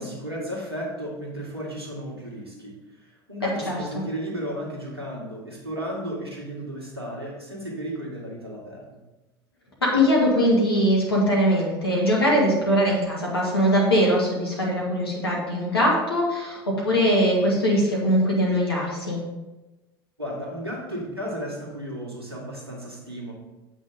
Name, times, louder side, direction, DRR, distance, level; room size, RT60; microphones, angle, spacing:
voice 1, 0.0-2.7 3.0-8.8 20.2-23.3, equal, 85° right, -2 dB, 2.0 m, -34 dB
voice 2, 3.4-3.8 9.9-19.2, equal, 80° left, -3 dB, 2.4 m, -21 dB
8.2 x 5.4 x 5.1 m, 1.1 s
figure-of-eight pair, 70°, 13 cm